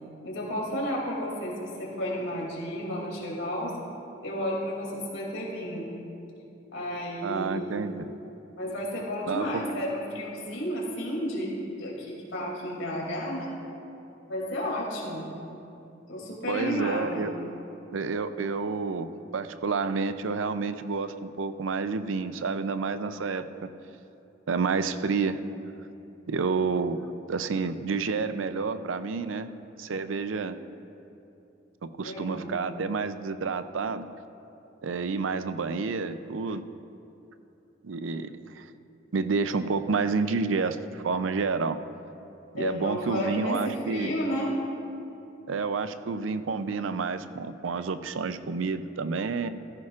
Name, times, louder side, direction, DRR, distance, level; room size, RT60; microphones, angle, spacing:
voice 1, 0.2-3.8 4.2-5.9 6.7-8.2 8.6-11.5 11.8-13.5 14.3-15.3 16.1-17.3 18.6-18.7 32.0-32.5 42.5-44.5, equal, 85° left, -3 dB, 2.7 m, -32 dB
voice 2, 7.2-8.1 9.3-9.5 16.5-17.3 17.9-23.7 24.5-25.4 26.3-27.0 27.3-29.5 29.8-30.6 31.8-34.0 34.8-36.6 37.8-38.7 39.1-41.8 42.5-44.1 45.5-49.5, right 4 dB, 85° right, 11 dB, 0.5 m, -29 dB
15.5 x 14.5 x 2.5 m, 2.8 s
head